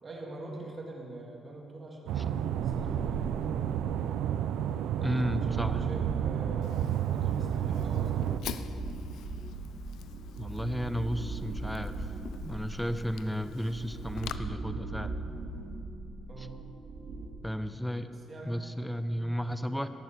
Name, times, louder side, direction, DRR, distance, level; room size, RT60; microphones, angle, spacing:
voice 1, 0.0-3.4 5.2-8.3 16.3-16.6 18.0-18.6 19.2-19.4, right 2 dB, 35° right, -1 dB, 2.9 m, -45 dB
sound 1, 2.1-8.4, right 10 dB, 85° right, 0.4 m, -31 dB
sound 2, 2.4-4.1 4.7-17.3, right 2 dB, 60° right, 2.0 m, -40 dB
voice 2, 5.0-5.8 10.4-12.1 12.4-15.2 16.4-16.5 17.4-18.1 18.4-19.9, equal, 5° left, 10 dB, 0.8 m, -33 dB
Fire, 6.6-14.4, left 10 dB, 80° left, 0.5 m, -46 dB
17.5 x 7.1 x 6.7 m, 2.8 s
cardioid pair, 90°, 0 cm